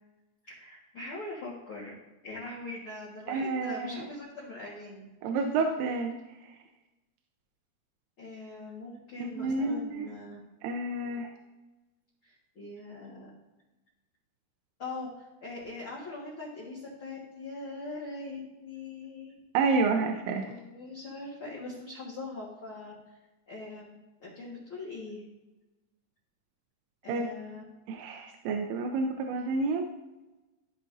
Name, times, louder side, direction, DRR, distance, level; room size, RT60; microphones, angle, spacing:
voice 1, 0.5-1.9 2.2-5.1 8.2-10.4 12.2-13.3 14.8-19.5 20.4-22.9 23.5-25.2 27.0-27.6, left 3 dB, 45° left, -7 dB, 1.9 m, -42 dB
voice 2, 3.3-4.1 5.2-6.2 9.4-10.1 10.6-11.3 19.5-20.5 27.1-27.3 27.9-29.9, right 3 dB, 80° right, 3 dB, 2.6 m, -29 dB
14.0 x 5.1 x 2.7 m, 1.1 s
omnidirectional pair, 4.6 m